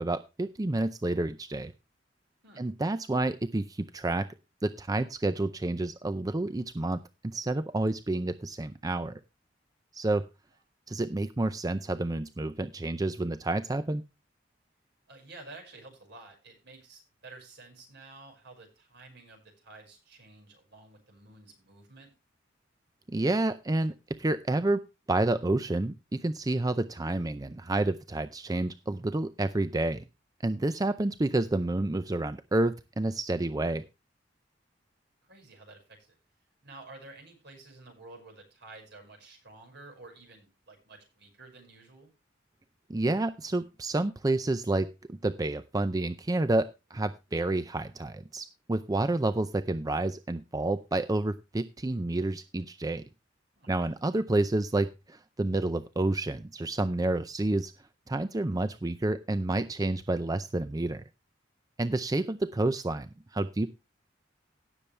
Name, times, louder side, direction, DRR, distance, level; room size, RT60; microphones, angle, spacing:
voice 1, 0.0-1.7 2.6-4.2 4.6-9.2 9.9-10.2 10.9-14.0 23.1-24.8 25.1-30.0 30.4-33.8 42.9-46.6 46.9-53.0 53.7-57.7 58.1-61.0 61.8-63.7, right 2 dB, 20° right, 11 dB, 0.5 m, -29 dB
voice 2, 15.1-22.1 35.2-36.2 36.6-42.1 53.6-54.0 61.9-62.1, right 2 dB, 65° right, 3 dB, 5.4 m, -51 dB
17.0 x 7.0 x 3.3 m, 0.27 s
head